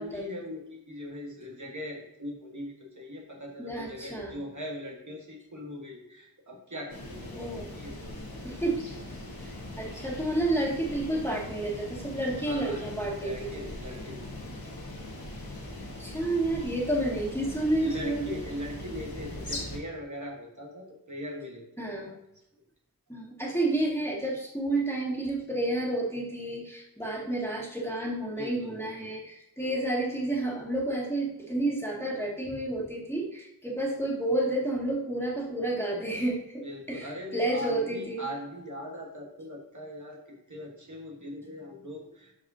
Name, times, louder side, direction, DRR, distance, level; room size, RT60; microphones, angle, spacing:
voice 1, 0.0-8.4 9.9-10.1 12.4-12.9 13.2-14.3 17.5-22.2 28.3-29.1 36.6-42.3, left 1 dB, 55° right, 0 dB, 1.6 m, -40 dB
voice 2, 3.6-4.4 7.3-7.8 8.4-8.8 9.4-13.6 16.0-18.3 21.8-22.1 23.1-38.2, right 1 dB, 5° left, -3 dB, 2.2 m, -30 dB
sound 1, 6.9-19.8, left 1 dB, 75° left, 1.7 m, -40 dB
12.5 x 4.8 x 2.8 m, 0.85 s
wide cardioid pair, 65°, 36 cm